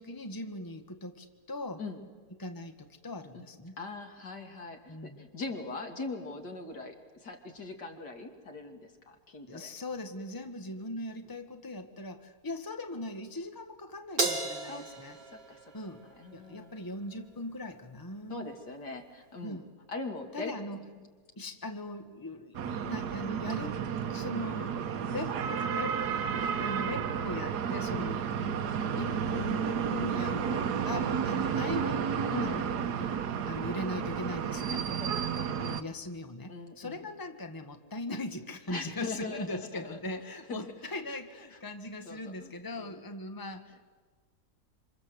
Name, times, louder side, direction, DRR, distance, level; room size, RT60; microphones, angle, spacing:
voice 1, 0.0-1.8 2.4-3.8 4.9-5.2 9.5-15.2 15.7-16.0 16.3-18.5 19.4-19.7 20.3-20.8 21.4-23.8 24.1-26.0 26.4-28.2 28.9-33.1 33.5-34.9 35.6-43.9, left 1 dB, 15° left, 7 dB, 1.4 m, -40 dB
voice 2, 3.8-9.7 14.7-14.9 15.3-15.7 16.2-16.7 18.3-21.1 27.9-28.1 32.3-32.7 35.0-35.9 36.5-37.1 38.7-41.6 42.0-42.5 42.8-43.0, left 3 dB, 85° left, 4 dB, 3.1 m, -41 dB
Crash cymbal, 14.2-16.7, right 2 dB, 35° right, 2.2 m, -34 dB
sound 1, 22.5-35.8, right 7 dB, 75° right, 1.6 m, -32 dB
27.5 x 26.5 x 8.0 m, 1.4 s
omnidirectional pair, 1.8 m